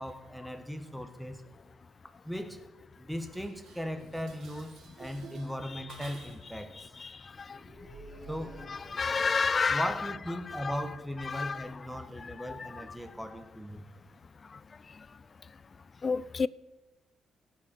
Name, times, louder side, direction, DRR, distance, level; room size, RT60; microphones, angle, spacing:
voice 1, 0.0-1.4 2.2-2.6 3.0-6.7 8.3-8.6 9.7-13.8, equal, ahead, 1.5 m, -38 dB
Dishes pots and pans, 3.2-6.6, right 4 dB, 75° right, 2.3 m, -52 dB
sound 1, 7.5-9.5, right 1 dB, 30° right, 4.7 m, -50 dB
voice 2, 8.7-9.9 10.5-10.7 11.3-11.7 12.2-12.8 16.0-16.5, left 5 dB, 35° left, 0.4 m, -30 dB
17.0 x 6.4 x 6.7 m
cardioid pair, 95°, 0 cm